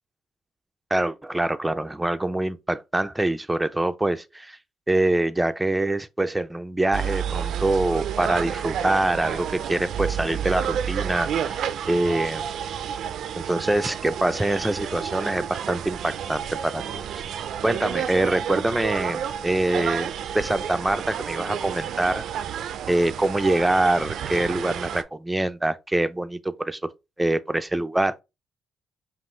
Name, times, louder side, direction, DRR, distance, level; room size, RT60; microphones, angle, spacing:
voice 1, 0.9-4.6 4.9-12.5 13.4-17.1 17.6-22.3 22.9-26.8 27.2-28.2, right 1 dB, 10° right, 0.5 m, -25 dB
sound 1, 6.9-25.0, right 9 dB, 70° right, 0.4 m, -30 dB
5.3 x 2.5 x 3.1 m
cardioid pair, 75°, 0 cm